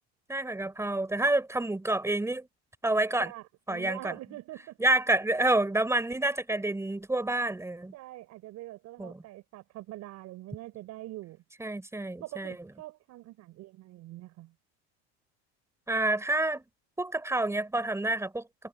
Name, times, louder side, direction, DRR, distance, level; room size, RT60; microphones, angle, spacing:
voice 1, 0.3-2.5 2.8-3.3 3.7-4.1 4.8-7.9 9.0-9.2 11.6-12.5 15.9-16.6 17.0-18.4, right 2 dB, 10° right, 4.2 m, -28 dB
voice 2, 3.2-4.8 7.9-11.4 12.2-14.5, right 16 dB, 55° right, 6.0 m, -44 dB
supercardioid pair, 115°, 32 cm